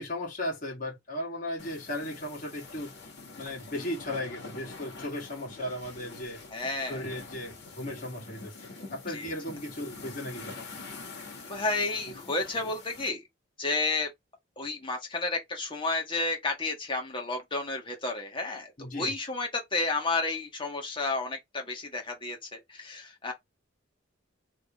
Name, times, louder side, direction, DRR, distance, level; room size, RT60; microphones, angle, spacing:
voice 1, 0.0-2.9 3.4-6.4 6.9-8.5 8.9-10.7 18.8-19.1, left 1 dB, 45° left, 2.0 m, -36 dB
sound 1, 1.6-13.1, left 3 dB, 65° left, 2.3 m, -45 dB
voice 2, 6.5-7.1 9.1-9.3 11.4-13.2 13.6-14.1 14.6-23.3, left 3 dB, 25° left, 1.7 m, -31 dB
3.7 x 3.6 x 3.6 m
head